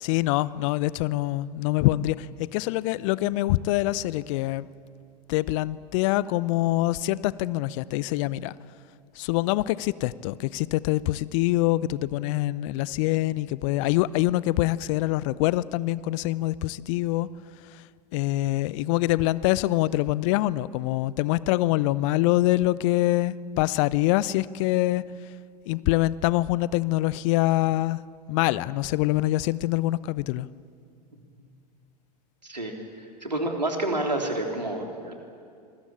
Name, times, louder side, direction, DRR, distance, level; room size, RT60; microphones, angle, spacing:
voice 1, 0.0-4.7 5.3-8.5 9.2-17.3 18.1-25.0 25.7-28.0 28.3-30.5, left 17 dB, 50° left, 0.7 m, -25 dB
voice 2, 32.4-35.1, right 1 dB, 90° right, 3.4 m, -29 dB
26.5 x 21.0 x 8.7 m
figure-of-eight pair, 85°, 21 cm